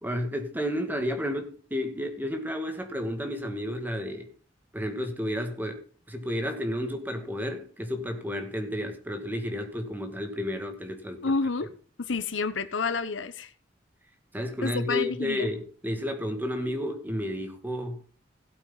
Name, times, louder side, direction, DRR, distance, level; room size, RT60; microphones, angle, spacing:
voice 1, 0.0-4.3 4.7-11.3 14.3-18.0, left 1 dB, 10° right, 2.0 m, -32 dB
voice 2, 11.2-11.7 12.0-13.5 14.6-15.5, left 4 dB, 75° left, 0.9 m, -29 dB
17.0 x 8.3 x 4.0 m
head